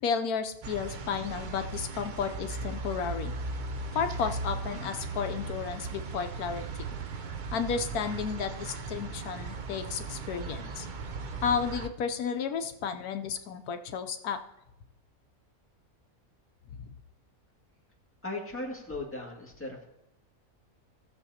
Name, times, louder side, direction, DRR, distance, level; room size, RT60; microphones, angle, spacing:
voice 1, 0.0-3.3 3.9-6.8 7.5-10.9 11.4-14.4, left 6 dB, 80° left, 7 dB, 1.2 m, -32 dB
sound 1, 0.6-11.9, right 3 dB, 55° right, 0.5 m, -37 dB
voice 2, 18.2-19.9, left 2 dB, 10° left, -2 dB, 1.8 m, -37 dB
16.5 x 7.0 x 2.8 m, 0.88 s
omnidirectional pair, 1.6 m